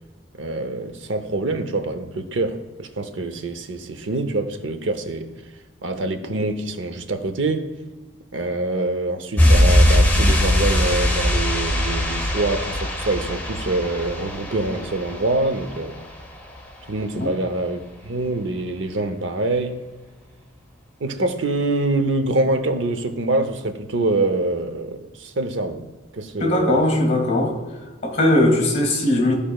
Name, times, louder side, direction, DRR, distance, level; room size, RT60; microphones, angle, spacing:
voice 1, 0.4-5.3 5.8-7.7 8.3-16.0 16.9-19.8 21.0-25.8 26.1-26.9, right 2 dB, 90° right, 0.8 m, -25 dB
sound 1, 9.4-15.9 16.1-16.3, left 1 dB, 10° left, 1.0 m, -20 dB
voice 2, 26.4-27.5 28.0-29.3, left 1 dB, 40° left, 2.4 m, -19 dB
14.0 x 5.1 x 2.4 m
head